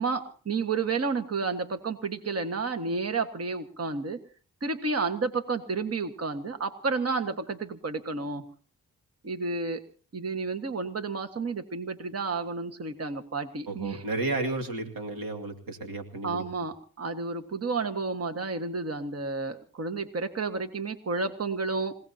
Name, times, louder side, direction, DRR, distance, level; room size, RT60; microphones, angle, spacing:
voice 1, 0.0-4.2 4.6-8.4 9.2-9.8 10.1-14.0 16.2-22.0, right 4 dB, 45° right, 7 dB, 1.6 m, -31 dB
voice 2, 13.7-16.4, right 2 dB, 90° right, 4 dB, 2.5 m, -32 dB
29.0 x 17.5 x 2.9 m, 0.38 s
cardioid pair, 65°, 33 cm